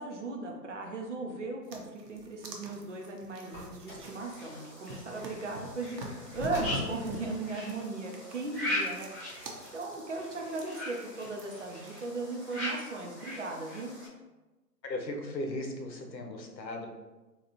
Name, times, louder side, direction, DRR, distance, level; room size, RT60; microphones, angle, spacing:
voice 1, 0.0-9.4 9.7-13.9, right 3 dB, 45° right, 1 dB, 0.6 m, -37 dB
sound 1, 1.6-12.1, right 1 dB, 75° right, 0.9 m, -45 dB
Car, 3.4-4.2 6.3-7.2, left 2 dB, 35° left, 1.4 m, -42 dB
sound 2, 4.0-14.1, left 1 dB, 10° right, 1.1 m, -40 dB
voice 2, 14.8-16.9, left 1 dB, 85° left, 3 dB, 0.9 m, -37 dB
4.1 x 2.4 x 2.7 m, 1.1 s
figure-of-eight pair, 150°, 50 cm